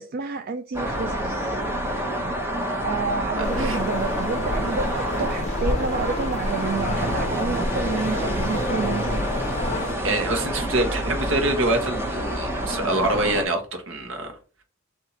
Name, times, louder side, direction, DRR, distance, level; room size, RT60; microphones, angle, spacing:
voice 1, 0.0-1.6 2.8-9.3, right 4 dB, 50° right, 0.4 m, -29 dB
sound 1, 0.7-13.5, right 1 dB, 10° right, 0.8 m, -28 dB
sound 2, 3.4-9.9, left 2 dB, 35° left, 0.7 m, -29 dB
voice 2, 3.4-3.8 10.0-14.3, right 2 dB, 65° right, 1.3 m, -25 dB
4.0 x 2.8 x 4.4 m
head